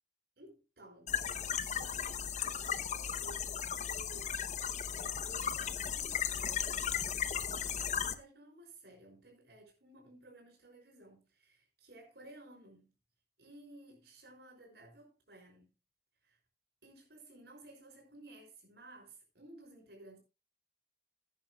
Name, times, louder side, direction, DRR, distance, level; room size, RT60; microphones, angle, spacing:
voice 1, 0.4-4.4 4.9-12.9 13.4-15.7 16.2-16.4 16.8-20.2, right 1 dB, 65° right, 5.9 m, -56 dB
sound 1, 1.1-8.1, left 8 dB, 40° left, 0.8 m, -36 dB
16.5 x 10.5 x 2.3 m
head